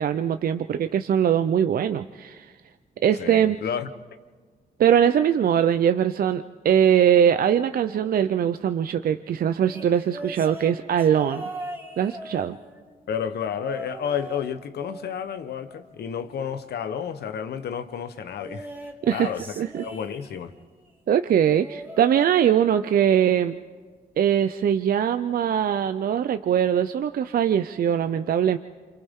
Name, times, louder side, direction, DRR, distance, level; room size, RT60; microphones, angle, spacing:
voice 1, 0.0-2.5 3.0-3.6 4.8-11.4 12.0-12.6 19.0-19.3 19.6-19.8 21.1-23.5 24.2-28.6, right 9 dB, 60° right, 0.6 m, -21 dB
voice 2, 3.1-3.9 13.1-18.7 19.1-20.5, left 8 dB, 75° left, 1.0 m, -31 dB
sound 1, 9.6-13.0 13.5-14.5 14.8-16.3 18.4-20.6 21.4-22.9 23.3-23.6 24.8-24.9, right 1 dB, 10° right, 1.9 m, -40 dB
27.5 x 25.5 x 3.7 m
cardioid pair, 90°, 17 cm